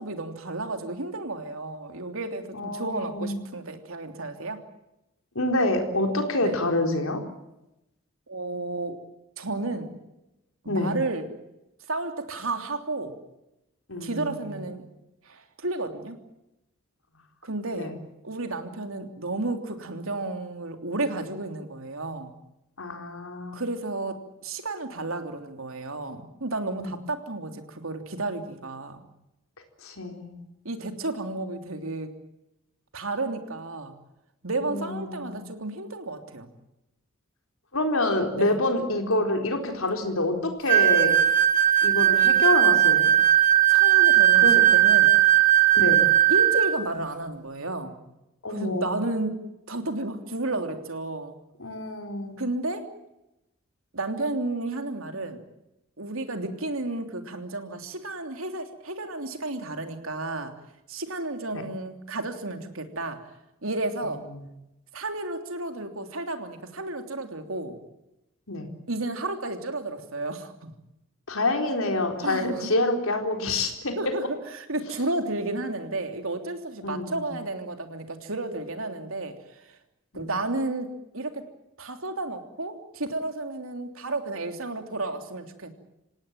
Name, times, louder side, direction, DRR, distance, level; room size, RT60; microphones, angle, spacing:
voice 1, 0.0-4.6 6.4-6.6 8.3-9.0 9.4-9.9 10.6-11.3 11.9-13.1 14.0-14.8 15.3-16.2 17.4-17.9 18.2-22.3 23.5-29.0 30.6-32.1 32.9-33.9 34.4-36.5 38.3-38.6 43.7-45.1 46.3-48.0 48.5-51.4 52.4-52.9 53.9-55.4 56.0-60.5 60.9-63.2 63.6-64.2 64.9-67.8 68.9-70.7 72.2-72.7 73.9-74.2 74.5-79.3 79.7-79.8 80.1-80.9 81.1-81.4 81.8-85.7, right 2 dB, 75° right, 6 dB, 3.2 m, -32 dB
voice 2, 2.5-3.4 5.3-7.2 10.7-10.9 13.9-14.7 17.7-17.9 22.8-23.6 26.8-26.9 29.8-30.4 34.6-35.3 37.7-41.2 41.8-43.1 44.3-44.7 45.7-46.1 48.4-48.9 51.6-52.4 61.5-61.6 68.5-68.7 71.3-73.9 76.8-77.3 80.1-80.3, left 2 dB, 85° left, 4 dB, 4.2 m, -27 dB
sound 1, 40.7-46.8, right 12 dB, 40° right, 1.8 m, -18 dB
27.0 x 18.0 x 9.1 m, 0.91 s
head